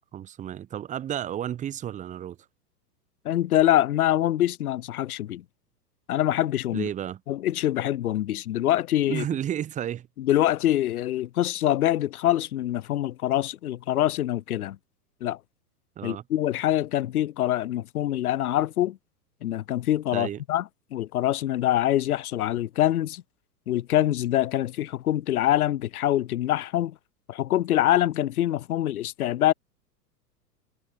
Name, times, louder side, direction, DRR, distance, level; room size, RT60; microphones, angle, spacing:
voice 1, 0.1-2.4 6.7-7.2 9.1-10.1 16.0-16.2 20.1-20.4, right 10 dB, 15° right, 0.8 m, -32 dB
voice 2, 3.2-5.4 6.1-6.9 7.3-9.2 10.2-14.8 15.2-15.4 16.0-19.0 19.4-20.6 20.9-23.2 23.7-26.9 27.3-29.5, left 13 dB, 65° left, 0.9 m, -24 dB
figure-of-eight pair, 100°, 48 cm